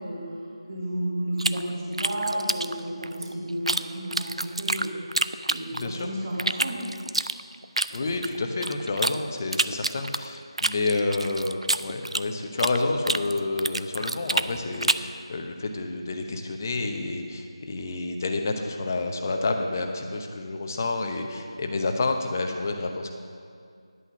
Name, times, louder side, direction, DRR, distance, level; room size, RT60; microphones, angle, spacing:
voice 1, 0.0-6.8, right 1 dB, 40° right, -4 dB, 1.7 m, -32 dB
sound 1, 1.4-3.8 4.1-6.0 6.4-9.2 9.5-12.8 13.1-15.1, right 2 dB, 85° right, 0.4 m, -27 dB
voice 2, 5.7-6.1 7.9-23.1, left 3 dB, 30° left, 4 dB, 0.8 m, -29 dB
11.0 x 5.7 x 7.0 m, 2.2 s
figure-of-eight pair, 165°, 3 cm